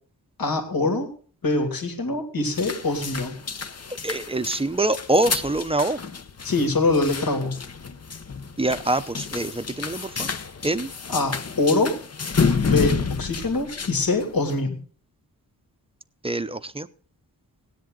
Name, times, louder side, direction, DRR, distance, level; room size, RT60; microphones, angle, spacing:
voice 1, 0.4-1.1 1.4-3.4 6.4-7.6 11.1-11.9 12.6-14.8, left 2 dB, 70° left, 4 dB, 2.8 m, -24 dB
sound 1, 2.5-14.6, left 5 dB, 40° left, 0.9 m, -29 dB
voice 2, 4.0-6.0 8.6-10.3 10.6-10.9 16.2-16.9, right 2 dB, 15° right, 12 dB, 0.7 m, -24 dB
17.5 x 10.5 x 3.9 m, 0.43 s
wide cardioid pair, 140°, 37 cm